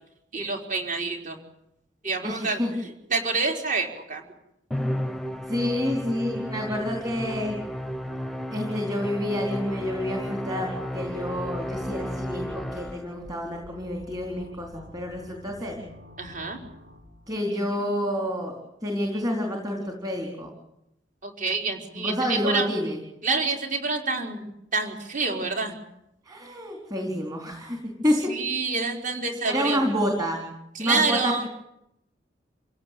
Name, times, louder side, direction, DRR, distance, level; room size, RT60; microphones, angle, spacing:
voice 1, 0.3-1.4 2.0-4.2 16.2-16.6 21.2-22.7 23.2-25.7 28.3-29.8 30.7-31.5, right 4 dB, 45° right, 3 dB, 4.3 m, -27 dB
voice 2, 2.2-2.7 5.5-7.6 8.5-15.8 17.3-18.5 18.8-20.5 22.0-23.0 26.3-28.3 29.5-30.5 30.8-31.5, equal, 20° right, 2 dB, 4.2 m, -28 dB
Musical instrument, 4.7-13.3, equal, ahead, 0.9 m, -33 dB
sound 1, 11.1-17.4, left 2 dB, 75° right, 5.2 m, -49 dB
28.0 x 17.0 x 9.3 m, 0.81 s
head